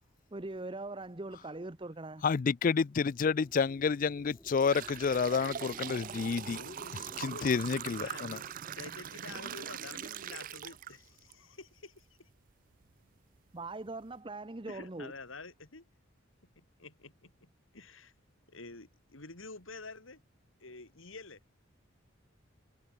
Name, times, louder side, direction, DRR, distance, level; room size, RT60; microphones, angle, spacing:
voice 1, 0.3-2.2 13.5-15.1, right 2 dB, 25° right, 0.9 m, -41 dB
voice 2, 2.2-6.6 7.2-8.4, left 5 dB, 40° left, 0.4 m, -29 dB
sound 1, 2.9-11.3, equal, 5° left, 1.5 m, -56 dB
sound 2, 3.5-3.7 4.2-11.3 11.8-11.9 12.7-12.8 13.3-13.4 13.9-14.1, right 9 dB, 45° right, 0.4 m, -42 dB
voice 3, 6.5-12.3 14.7-15.8 16.5-18.1 18.5-20.2 20.6-21.4, left 3 dB, 80° left, 3.3 m, -49 dB
head